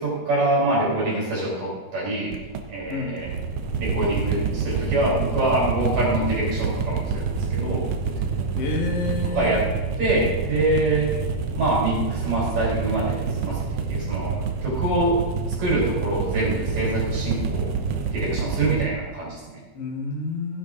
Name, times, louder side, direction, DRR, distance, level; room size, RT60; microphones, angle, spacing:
voice 1, 0.0-2.3 2.7-3.3 3.8-7.9 9.3-9.6 10.0-11.1 11.6-13.6 13.9-15.3 15.6-17.7 18.1-19.6, right 1 dB, 55° right, -6 dB, 5.1 m, -25 dB
sound 1, 2.3-18.9, right 5 dB, 70° right, 1.5 m, -27 dB
voice 2, 2.9-3.2 8.5-9.6 19.7-20.6, left 3 dB, 50° left, -1 dB, 2.1 m, -29 dB
16.0 x 8.8 x 3.7 m, 1.2 s
omnidirectional pair, 4.0 m